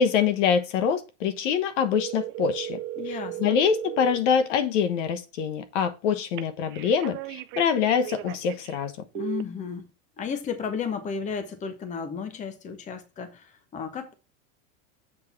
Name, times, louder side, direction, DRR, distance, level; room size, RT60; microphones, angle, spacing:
voice 1, 0.0-2.8 3.1-8.9, left 7 dB, 65° left, 1.2 m, -25 dB
sound 1, 1.9-4.2 6.4-8.8 9.1-9.4, right 16 dB, 30° right, 0.5 m, -36 dB
voice 2, 3.0-3.6 9.1-9.9 10.2-14.1, left 6 dB, 20° left, 0.9 m, -33 dB
7.5 x 3.7 x 5.8 m
supercardioid pair, 150°, 39 cm